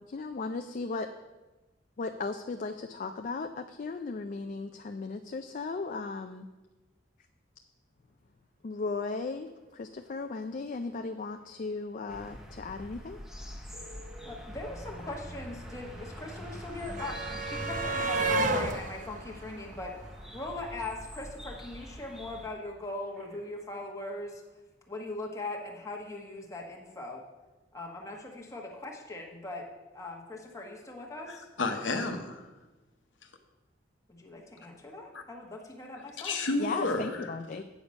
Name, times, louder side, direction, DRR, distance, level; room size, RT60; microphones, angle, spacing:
voice 1, 0.1-1.1 2.0-6.5 8.6-13.2 36.6-37.6, left 3 dB, 45° left, 6 dB, 0.4 m, -36 dB
sound 1, 12.1-22.5, equal, ahead, 0.9 m, -45 dB
Telephone, 13.7-14.4 15.0-15.1 16.8-17.0 17.4-17.5 22.8-23.7 30.8-31.0, equal, 60° right, 2.6 m, -54 dB
voice 2, 14.2-24.4 24.9-27.2 27.7-29.6 29.9-31.5 34.1-36.4, left 2 dB, 15° left, -1 dB, 1.2 m, -40 dB
sound 2, 14.2-14.3 14.4-20.6 21.8-21.9 22.2-22.3, right 2 dB, 45° right, 0.6 m, -34 dB
voice 3, 31.3-32.5 35.1-35.2 36.2-37.3, left 3 dB, 75° left, 5 dB, 0.9 m, -31 dB
8.3 x 7.0 x 5.2 m, 1.1 s
head